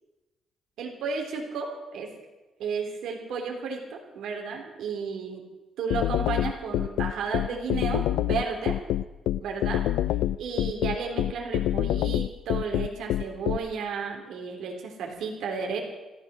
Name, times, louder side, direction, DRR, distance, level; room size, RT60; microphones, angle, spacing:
voice 1, 0.8-2.1 2.6-5.4 5.8-8.8 9.4-9.8 10.4-15.8, right 5 dB, 80° right, 1 dB, 3.3 m, -33 dB
sound 1, 5.9-13.6, left 13 dB, 90° left, 0.4 m, -25 dB
14.5 x 11.5 x 7.5 m, 1.1 s
cardioid pair, 90°, 0 cm